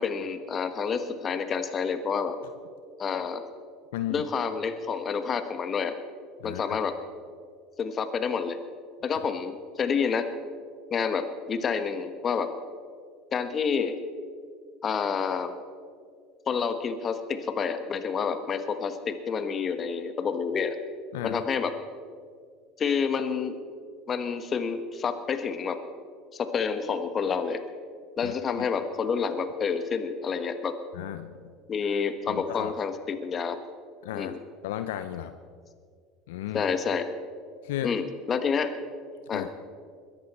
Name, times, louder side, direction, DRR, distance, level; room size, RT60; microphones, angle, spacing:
voice 1, 0.0-2.4 3.0-3.4 4.1-5.9 6.4-6.9 7.8-8.6 9.0-10.3 10.9-12.5 13.3-14.0 14.8-15.5 16.5-20.7 21.2-21.7 22.8-23.5 24.1-25.8 26.3-27.6 28.2-30.7 31.7-33.6 34.1-34.4 36.5-37.1 37.8-38.7 39.3-39.4, left 6 dB, 35° left, 9 dB, 1.4 m, -28 dB
voice 2, 3.9-4.3 6.4-6.8 21.1-21.4 28.2-28.7 30.9-31.3 32.3-32.7 34.0-34.4 34.6-35.4 36.3-36.6 37.6-37.9 39.3-39.5, left 13 dB, 75° left, 10 dB, 0.6 m, -34 dB
21.5 x 11.5 x 4.4 m, 2.1 s
hypercardioid pair, 75°, 0 cm